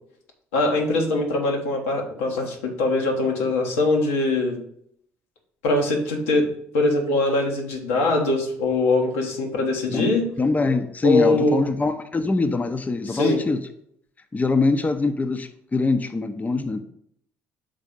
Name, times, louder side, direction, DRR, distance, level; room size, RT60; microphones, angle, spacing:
voice 1, 0.5-4.6 5.6-6.5 6.7-10.3 11.0-11.6 13.1-13.4, left 2 dB, 85° left, 1 dB, 1.1 m, -22 dB
voice 2, 9.9-13.6 14.3-16.8, left 3 dB, 20° left, 8 dB, 0.7 m, -23 dB
5.4 x 4.1 x 5.1 m, 0.69 s
hypercardioid pair, 55°, 7 cm